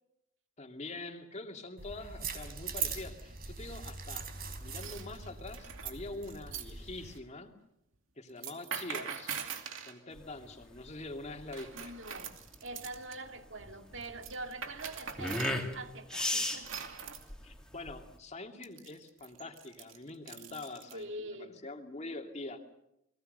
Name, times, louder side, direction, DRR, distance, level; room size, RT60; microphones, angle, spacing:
voice 1, 0.6-4.3 4.6-7.6 8.2-9.4 9.9-11.9 17.4-22.6, left 2 dB, 35° left, 5 dB, 2.5 m, -44 dB
sound 1, 1.8-7.2, right 5 dB, 50° right, 4.1 m, -41 dB
sound 2, 2.9-3.3 4.6-6.7 8.3-10.0 11.5-13.2 14.0-15.6 16.4-17.3 18.6-21.0, right 7 dB, 85° right, 2.6 m, -43 dB
sound 3, 10.1-18.2, left 1 dB, 5° left, 2.9 m, -37 dB
voice 2, 11.7-16.7 20.9-21.6, right 2 dB, 65° right, 6 dB, 2.3 m, -44 dB
29.5 x 21.5 x 6.8 m, 0.83 s
head